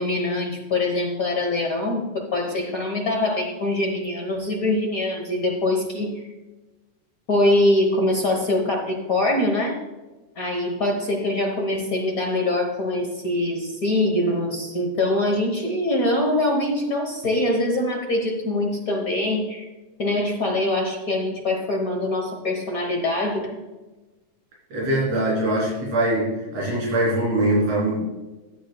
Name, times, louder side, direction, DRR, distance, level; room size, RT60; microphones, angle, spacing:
voice 1, 0.0-6.3 7.3-9.8 10.4-19.7 20.0-23.6, left 1 dB, 70° left, 1 dB, 0.8 m, -23 dB
voice 2, 24.7-28.0, right 1 dB, 60° right, -6 dB, 4.2 m, -22 dB
14.5 x 8.7 x 2.3 m, 1.2 s
omnidirectional pair, 3.3 m